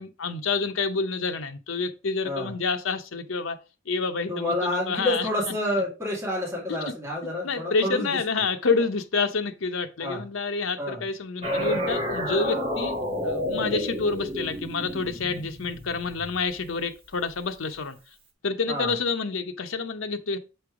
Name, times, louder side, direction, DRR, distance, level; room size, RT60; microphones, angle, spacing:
voice 1, 0.0-3.6 3.9-5.3 6.9-7.0 7.4-18.0 18.4-20.4, left 4 dB, 85° left, 0.8 m, -28 dB
voice 2, 4.3-8.1 10.0-10.2 10.8-11.0 18.7-18.9, left 1 dB, 15° right, 2.7 m, -28 dB
sound 1, 11.4-16.7, left 1 dB, 30° right, 1.5 m, -30 dB
7.7 x 3.4 x 4.8 m
head